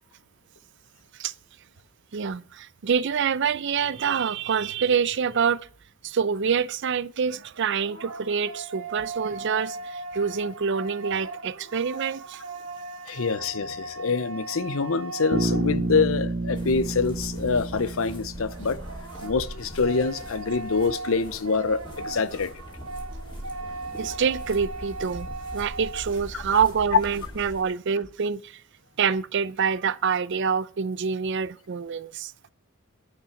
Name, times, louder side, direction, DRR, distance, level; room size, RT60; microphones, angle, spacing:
voice 1, 2.1-5.6 6.0-12.4 22.1-22.2 24.0-28.6 29.0-32.3, right 6 dB, 60° right, 0.5 m, -26 dB
sound 1, 7.5-16.2 18.5-26.2, right 3 dB, 80° right, 1.6 m, -38 dB
voice 2, 13.1-18.8 19.2-22.5, left 4 dB, 75° left, 0.7 m, -25 dB
Bass guitar, 15.3-19.2, right 2 dB, 40° right, 0.8 m, -29 dB
sound 2, 16.5-27.6, equal, 25° left, 2.9 m, -41 dB
9.6 x 5.8 x 6.9 m
head